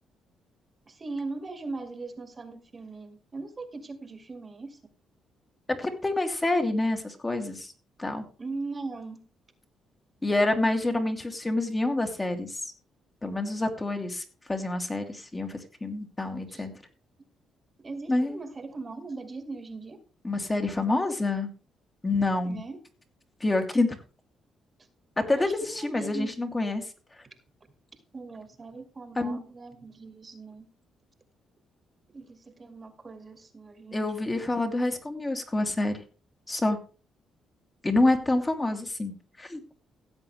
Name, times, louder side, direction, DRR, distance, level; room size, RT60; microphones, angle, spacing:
voice 1, 0.9-4.8 8.4-9.2 16.5-16.7 17.8-20.0 22.4-22.8 25.3-26.3 28.1-30.7 32.1-34.4, right 3 dB, 30° right, 8 dB, 2.1 m, -39 dB
voice 2, 5.7-7.7 8.0-8.2 10.2-12.7 13.2-14.2 14.5-16.7 18.1-18.4 20.2-21.5 22.0-22.6 23.4-24.0 25.3-26.9 29.2-29.4 33.9-36.0 36.5-36.8 37.8-39.6, left 2 dB, 20° left, 5 dB, 2.5 m, -27 dB
16.5 x 7.8 x 3.3 m, 0.35 s
cardioid pair, 90°, 0 cm